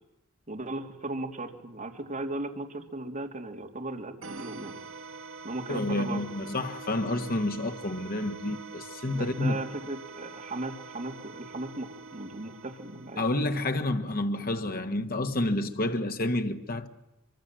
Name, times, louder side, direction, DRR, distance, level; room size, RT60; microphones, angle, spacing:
voice 1, 0.5-4.7 5.4-6.2 9.1-13.2, right 2 dB, 35° right, 3.2 m, -37 dB
sound 1, 4.2-13.7, right 4 dB, 70° right, 1.7 m, -44 dB
voice 2, 5.7-9.6 13.2-16.9, left 2 dB, 45° left, 1.7 m, -29 dB
25.5 x 24.5 x 7.7 m
head